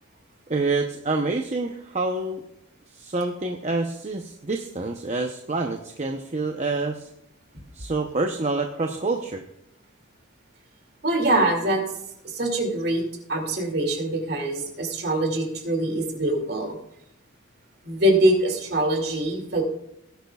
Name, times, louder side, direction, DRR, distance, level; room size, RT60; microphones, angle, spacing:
voice 1, 0.5-2.4 2.9-7.1 7.7-9.4, right 3 dB, 35° right, 4 dB, 0.7 m, -27 dB
voice 2, 11.0-11.8 12.2-13.0 13.3-16.8 17.8-19.6, right 1 dB, 55° right, 3 dB, 2.4 m, -23 dB
18.5 x 10.5 x 2.3 m, 0.79 s
head